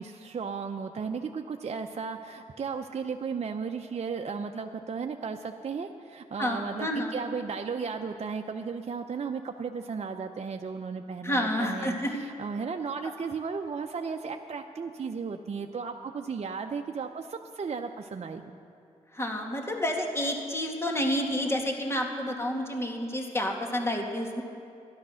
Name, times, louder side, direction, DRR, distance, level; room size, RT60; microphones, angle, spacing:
voice 1, 0.0-18.5, right 5 dB, 50° right, 4 dB, 0.7 m, -35 dB
voice 2, 6.4-7.1 11.2-12.2 19.1-24.4, left 1 dB, 20° left, 1 dB, 2.2 m, -29 dB
12.5 x 11.5 x 6.3 m, 2.5 s
supercardioid pair, 45°, 14 cm